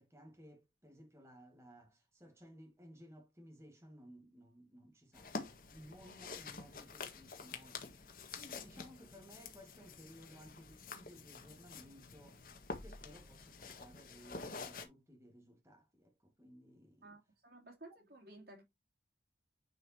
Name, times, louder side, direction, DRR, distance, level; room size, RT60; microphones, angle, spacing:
voice 1, 0.0-12.5 12.8-17.1, equal, 15° right, 1.8 m, -58 dB
sound 1, 5.1-14.8, left 4 dB, 50° left, 1.6 m, -48 dB
voice 2, 17.0-18.6, right 2 dB, 55° right, 3.0 m, -55 dB
10.0 x 4.9 x 2.9 m
head